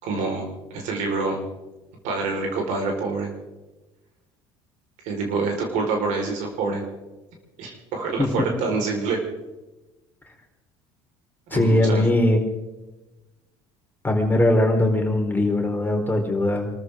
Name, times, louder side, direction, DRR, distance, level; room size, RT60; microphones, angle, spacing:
voice 1, 0.0-1.4 2.0-3.3 5.0-6.8 7.6-9.2 11.5-12.1, right 3 dB, 70° right, 2 dB, 4.8 m, -26 dB
voice 2, 11.5-12.5 14.0-16.7, left 1 dB, 15° left, 2 dB, 4.2 m, -20 dB
27.0 x 14.0 x 3.8 m, 1.1 s
hypercardioid pair, 75°, 13 cm